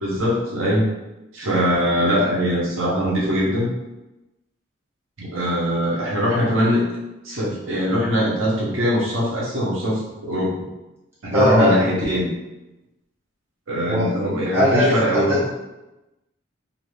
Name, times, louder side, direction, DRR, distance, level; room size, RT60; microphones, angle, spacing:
voice 1, 0.0-0.9 1.3-3.7 5.2-6.8 7.2-10.5 11.2-12.3 13.7-15.4, equal, 85° right, -5 dB, 0.8 m, -21 dB
voice 2, 11.3-11.7 13.8-14.1 14.5-15.5, left 1 dB, 10° right, -9 dB, 0.9 m, -19 dB
2.5 x 2.4 x 3.2 m, 0.99 s
head